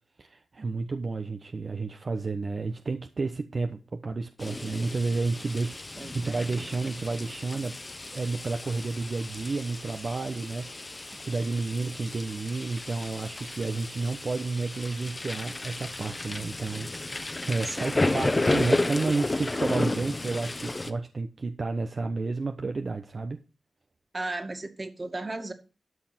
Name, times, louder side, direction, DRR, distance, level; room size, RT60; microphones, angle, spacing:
voice 1, 0.2-7.8 8.1-23.4, right 3 dB, 55° right, 1.0 m, -31 dB
sound 1, 4.4-20.9, left 2 dB, 30° left, 1.4 m, -32 dB
voice 2, 6.0-6.4 17.6-18.1 24.1-25.5, right 2 dB, 35° right, 2.3 m, -35 dB
13.0 x 5.8 x 6.2 m
cardioid pair, 50°, 0 cm